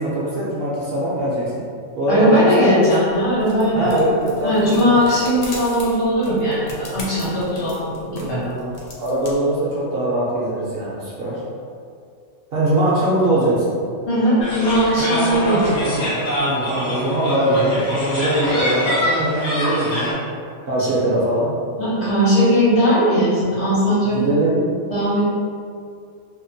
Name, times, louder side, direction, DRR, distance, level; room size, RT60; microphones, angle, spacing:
voice 1, 0.0-1.6 2.0-3.1 3.7-5.0 8.4-11.4 12.5-13.8 15.1-20.1 20.6-21.5 24.1-24.6, right 1 dB, 60° right, -7 dB, 0.7 m, -21 dB
voice 2, 2.1-4.0 4.4-8.4 14.1-16.0 21.8-24.2 24.9-25.2, equal, 65° left, -10 dB, 1.3 m, -18 dB
sound 1, 3.1-9.4, left 1 dB, 85° left, 0.3 m, -38 dB
sound 2, 14.4-20.1, left 1 dB, 45° left, 0.7 m, -24 dB
2.8 x 2.1 x 2.6 m, 2.3 s
omnidirectional pair, 1.3 m